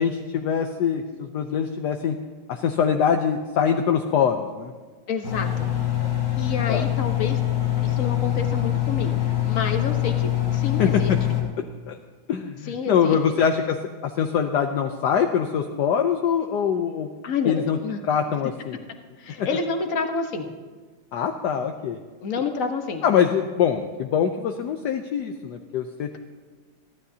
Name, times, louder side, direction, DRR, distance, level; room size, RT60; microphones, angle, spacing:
voice 1, 0.0-2.1 2.5-4.7 6.7-6.9 10.8-11.2 11.9-12.0 12.3-13.8 14.2-17.1 17.5-17.8 18.1-18.8 19.4-19.5 21.1-22.0 23.0-26.2, left 7 dB, 65° left, 5 dB, 1.1 m, -23 dB
voice 2, 5.1-5.7 6.4-7.4 7.8-11.1 12.6-13.2 17.2-18.0 19.2-20.5 22.2-23.0, left 5 dB, 45° left, 5 dB, 1.3 m, -29 dB
Engine, 5.2-11.4, left 12 dB, 85° left, 3.5 m, -24 dB
23.0 x 15.0 x 2.8 m, 1.4 s
omnidirectional pair, 2.4 m